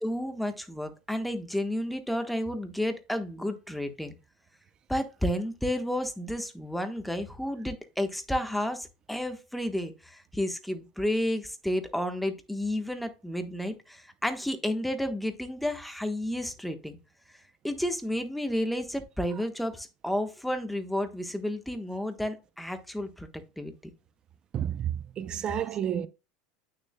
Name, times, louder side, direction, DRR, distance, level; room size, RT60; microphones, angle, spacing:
voice 1, 0.0-4.1 4.9-17.0 17.6-23.7, left 1 dB, ahead, 1.2 m, -31 dB
voice 2, 24.5-26.1, right 10 dB, 35° right, 0.6 m, -30 dB
8.9 x 6.6 x 2.3 m
supercardioid pair, 115°, 2 cm